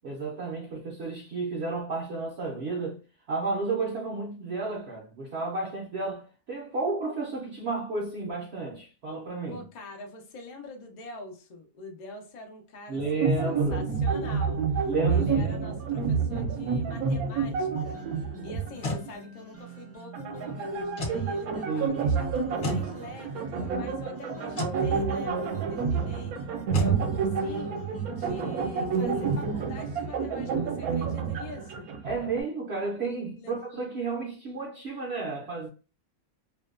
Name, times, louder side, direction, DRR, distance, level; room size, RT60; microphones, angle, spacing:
voice 1, 0.0-3.0 3.3-9.6 12.9-13.9 14.9-15.6 21.7-22.1 32.0-35.7, right 3 dB, 60° right, 0.7 m, -32 dB
voice 2, 9.5-18.0 18.4-26.4 26.7-27.8 28.1-31.9 33.3-33.5, left 3 dB, 65° left, 0.4 m, -44 dB
sound 1, 13.0-18.7 19.1-19.2 20.1-32.4, right 5 dB, 80° right, 1.0 m, -29 dB
sound 2, 17.8-30.6, right 1 dB, 15° right, 0.5 m, -48 dB
sound 3, 18.5-19.1 20.9-21.2 22.6-22.9 24.5-24.8 26.7-27.0, left 2 dB, 50° left, 0.8 m, -31 dB
2.6 x 2.2 x 2.4 m
omnidirectional pair, 1.6 m